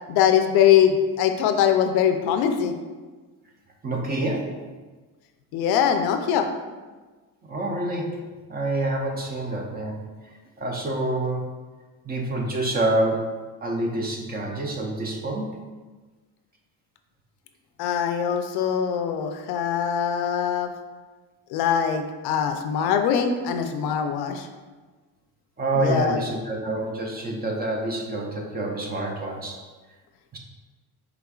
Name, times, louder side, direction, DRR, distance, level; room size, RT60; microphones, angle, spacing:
voice 1, 0.1-2.8 5.5-6.5 17.8-20.7 21.5-24.5 25.8-26.2, left 8 dB, 75° left, 6 dB, 0.5 m, -22 dB
voice 2, 3.8-4.6 7.5-8.2 8.5-10.0 10.6-11.4 12.0-15.5 25.6-29.6 30.3-30.4, right 2 dB, 25° right, 0 dB, 0.5 m, -27 dB
4.9 x 3.5 x 2.3 m, 1.3 s
cardioid pair, 140°, 38 cm